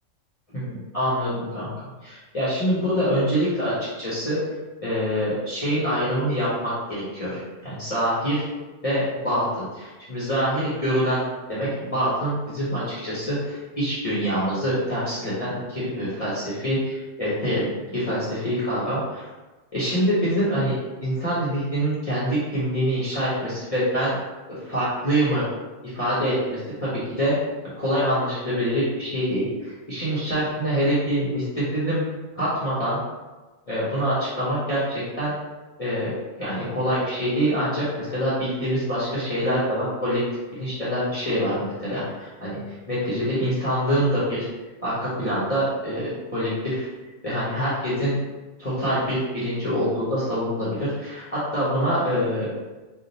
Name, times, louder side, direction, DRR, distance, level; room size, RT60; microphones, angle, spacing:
voice 1, 0.5-4.4 4.8-8.4 8.8-11.2 11.5-17.7 17.9-19.2 19.7-24.2 24.5-25.4 25.9-27.4 27.8-32.0 32.3-33.0 33.7-35.3 35.8-36.1 36.4-40.2 40.5-44.5 44.8-46.9 47.2-48.2 48.6-52.5, equal, 30° left, -10 dB, 1.1 m, -25 dB
3.7 x 2.4 x 4.1 m, 1.2 s
omnidirectional pair, 1.3 m